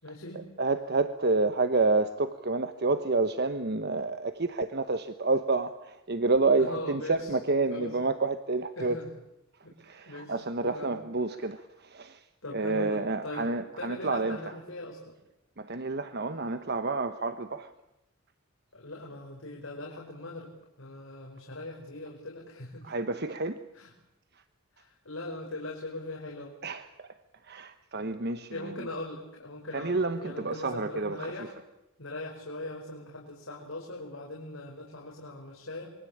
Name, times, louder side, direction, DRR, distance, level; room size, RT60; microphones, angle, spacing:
voice 1, 0.0-0.4 6.6-7.4 7.7-8.0 8.8-9.1 9.6-9.7 10.1-11.0 11.3-11.5 12.4-15.1 18.7-20.5 20.8-22.9 23.7-23.9 24.7-26.5 28.5-31.5 32.0-35.9, left 2 dB, 65° left, -1 dB, 5.5 m, -40 dB
voice 2, 0.6-9.0 9.8-12.2 12.5-14.4 15.6-17.7 22.8-23.6 26.6-27.1 27.4-28.7 29.7-31.3, right 3 dB, 50° right, 10 dB, 1.1 m, -29 dB
27.5 x 23.5 x 8.7 m, 0.89 s
head